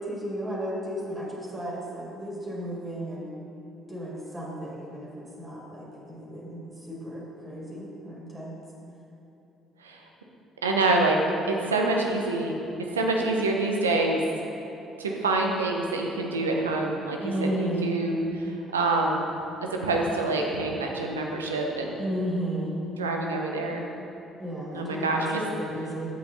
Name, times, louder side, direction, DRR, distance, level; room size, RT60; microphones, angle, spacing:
voice 1, 0.0-3.3 3.9-8.5 17.2-17.9 22.0-22.7 24.4-26.0, equal, 25° right, -5 dB, 2.1 m, -33 dB
voice 2, 10.6-11.2 11.5-12.6 12.9-14.2 15.0-17.5 17.8-19.3 19.8-22.0 23.0-23.9 24.7-25.4, right 2 dB, 85° right, 1 dB, 0.7 m, -26 dB
8.3 x 7.8 x 4.0 m, 2.9 s
figure-of-eight pair, 50°, 0 cm